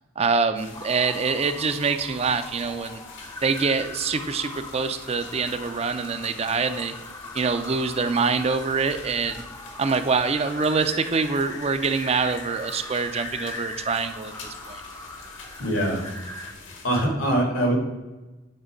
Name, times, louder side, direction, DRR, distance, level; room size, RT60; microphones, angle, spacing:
voice 1, 0.2-3.0 3.4-6.9 7.3-9.4 9.8-14.3 14.7-14.8, right 4 dB, 30° right, 9 dB, 0.4 m, -25 dB
sound 1, 0.6-16.9, left 3 dB, 70° left, 1.5 m, -45 dB
sound 2, 0.7-16.5, left 2 dB, 15° left, 0.6 m, -40 dB
voice 2, 15.6-16.0 16.8-17.7, right 1 dB, 85° left, 1 dB, 2.6 m, -23 dB
8.8 x 3.9 x 5.1 m, 1.1 s
head